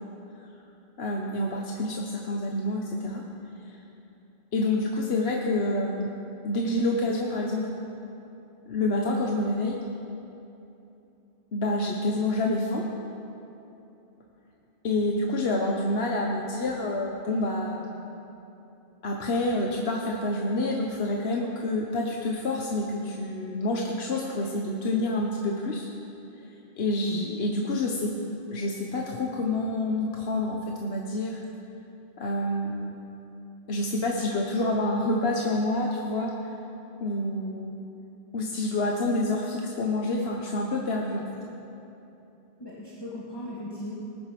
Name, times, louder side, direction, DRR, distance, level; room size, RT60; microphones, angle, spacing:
voice 1, 1.0-3.2 3.7-3.8 4.5-6.1 6.4-7.7 8.7-9.8 11.5-12.8 14.8-18.0 19.0-25.9 26.8-28.1 28.5-31.4 32.2-32.9 33.7-36.5 37.0-37.7 38.3-41.2, left 2 dB, 70° left, 0 dB, 1.2 m, -28 dB
voice 2, 27.0-27.3 42.6-43.9, left 1 dB, 25° left, -7 dB, 1.9 m, -37 dB
19.5 x 10.0 x 6.0 m, 2.9 s
omnidirectional pair, 1.1 m